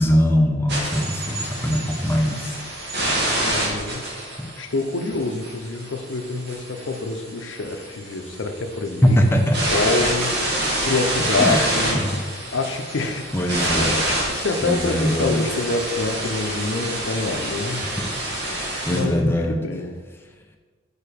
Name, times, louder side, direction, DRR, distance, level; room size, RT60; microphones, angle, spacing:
voice 1, 0.0-2.6 4.4-4.5 9.0-9.7 11.4-12.1 13.3-14.0 14.6-15.4 17.8-18.1 18.5-19.6, equal, 10° left, 3 dB, 0.4 m, -21 dB
sound 1, 0.7-19.0, right 1 dB, 50° right, 1.4 m, -27 dB
voice 2, 3.4-4.1 4.6-9.2 9.7-12.0 12.5-17.8 18.9-19.9, left 3 dB, 65° left, 6 dB, 0.6 m, -26 dB
4.8 x 4.5 x 5.0 m, 1.4 s
head